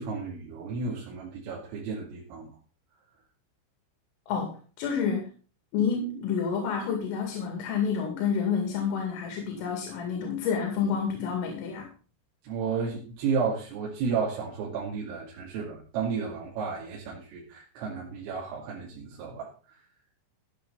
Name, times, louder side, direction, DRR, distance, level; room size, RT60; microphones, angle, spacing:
voice 1, 0.0-2.5 12.4-19.8, right 5 dB, 80° right, -3 dB, 5.0 m, -33 dB
voice 2, 4.3-5.3 5.7-11.9, left 6 dB, 80° left, 3 dB, 4.9 m, -29 dB
14.5 x 9.7 x 4.1 m, 0.37 s
omnidirectional pair, 5.8 m